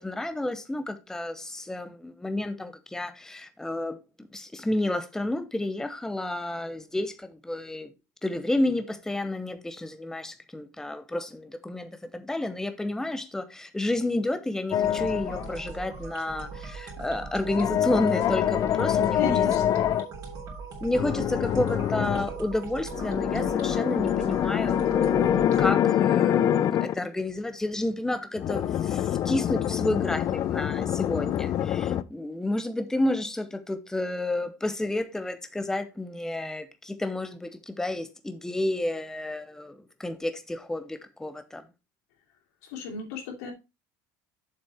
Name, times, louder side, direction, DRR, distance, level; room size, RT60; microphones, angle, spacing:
voice 1, 0.0-7.9 8.2-19.2 20.8-41.6, left 1 dB, 5° left, 0.9 m, -31 dB
sound 1, 14.7-15.6 17.4-20.1 20.9-22.3 22.9-27.0 28.4-32.0, left 10 dB, 45° left, 0.6 m, -25 dB
sound 2, 14.8-25.7, right 4 dB, 45° right, 3.3 m, -40 dB
voice 2, 19.2-19.8 42.6-43.5, left 5 dB, 90° left, 3.4 m, -33 dB
7.3 x 6.2 x 4.3 m
supercardioid pair, 115°, 8 cm